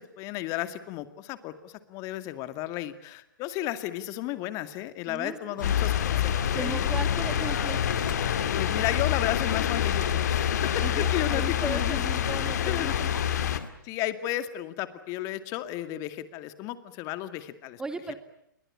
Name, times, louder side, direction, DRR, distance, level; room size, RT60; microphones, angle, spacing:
voice 1, 0.0-6.9 8.5-12.0 12.3-13.0 13.8-17.8 18.1-18.2, left 14 dB, 30° left, 11 dB, 2.2 m, -34 dB
voice 2, 5.1-5.6 6.5-7.8 10.8-13.1 17.8-18.1, right 3 dB, 5° right, 10 dB, 1.4 m, -37 dB
sound 1, 5.6-13.7, left 4 dB, 85° left, 2.1 m, -39 dB
sound 2, 5.6-13.6, left 10 dB, 55° left, 2.3 m, -27 dB
28.5 x 23.0 x 8.8 m, 0.78 s
figure-of-eight pair, 125°, 11 cm